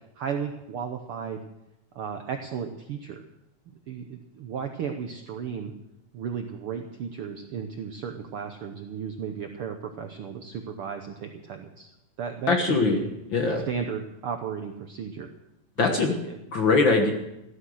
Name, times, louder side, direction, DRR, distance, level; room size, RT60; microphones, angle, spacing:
voice 1, 0.2-1.4 1.9-3.2 3.9-5.7 6.1-11.9 12.2-13.1 13.7-15.3 15.8-16.4, right 7 dB, 70° right, 6 dB, 1.3 m, -34 dB
voice 2, 12.5-13.0 13.3-13.6 15.8-16.2 16.5-17.1, left 3 dB, 50° left, 4 dB, 1.6 m, -21 dB
15.5 x 13.0 x 6.4 m, 0.92 s
omnidirectional pair, 3.6 m